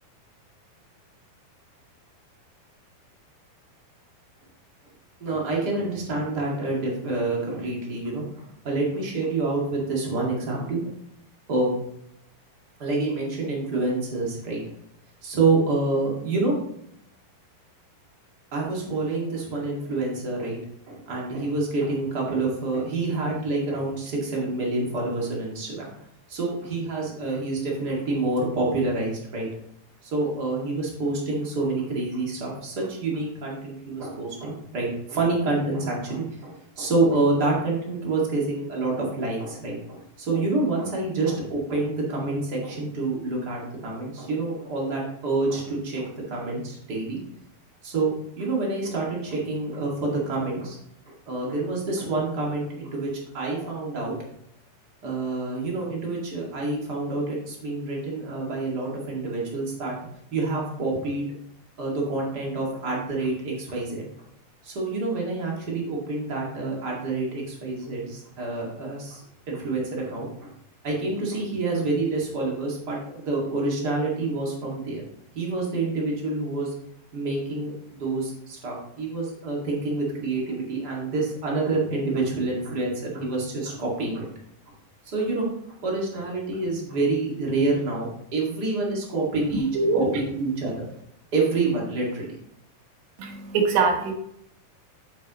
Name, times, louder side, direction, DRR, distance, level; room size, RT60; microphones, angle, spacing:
voice 1, 5.2-10.8 11.5-11.7 12.8-14.6 15.2-16.6 18.5-20.6 20.9-25.9 26.3-29.5 30.0-47.2 47.8-50.8 51.3-54.1 55.0-59.9 60.3-61.3 61.8-64.0 64.6-69.2 69.5-70.5 70.8-75.0 75.3-76.7 77.1-84.3 85.1-85.5 85.8-89.7 89.9-90.8 91.3-92.3, right 3 dB, 35° right, -2 dB, 1.8 m, -27 dB
voice 2, 89.7-90.1 93.2-94.1, right 4 dB, 85° right, 3 dB, 3.3 m, -23 dB
9.1 x 7.2 x 3.0 m, 0.74 s
omnidirectional pair, 4.6 m